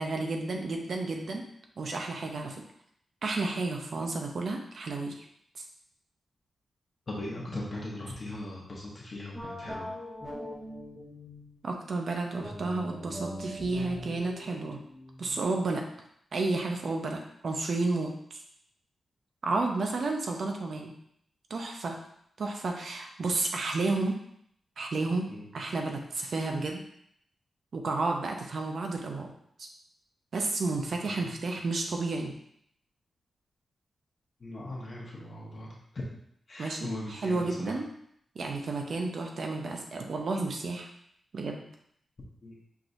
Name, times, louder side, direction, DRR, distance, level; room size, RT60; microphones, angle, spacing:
voice 1, 0.0-1.5 1.8-2.6 3.2-5.2 11.6-14.8 15.2-15.8 16.3-18.4 19.4-20.9 21.5-22.0 22.4-24.2 24.8-25.3 25.5-26.8 27.7-29.3 30.3-32.3 36.6-37.9 38.3-40.9 41.3-41.6, right 3 dB, 55° right, 2 dB, 0.7 m, -31 dB
voice 2, 7.1-9.9 25.3-25.5 30.9-31.3 34.4-36.1 36.5-37.7 42.4-42.6, left 1 dB, 40° left, -5 dB, 0.9 m, -39 dB
sound 1, 9.3-11.6 12.4-15.7, equal, 5° right, 1.1 m, -42 dB
5.9 x 3.0 x 2.6 m, 0.70 s
wide cardioid pair, 125°, 0 cm